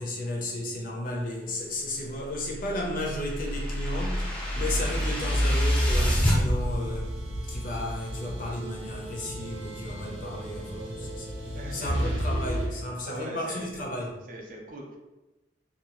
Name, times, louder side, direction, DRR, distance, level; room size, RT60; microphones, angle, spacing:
voice 1, 0.0-7.1 7.5-11.3 11.7-14.1, left 1 dB, 45° left, 0 dB, 0.5 m, -34 dB
sound 1, 2.3-6.4, equal, 5° left, 0.5 m, -27 dB
sound 2, 4.5-12.7, equal, 85° right, 0.7 m, -32 dB
voice 2, 11.5-12.1 12.7-13.9 14.2-15.0, right 1 dB, 45° right, 0 dB, 0.5 m, -41 dB
2.7 x 2.3 x 2.8 m, 1.1 s
head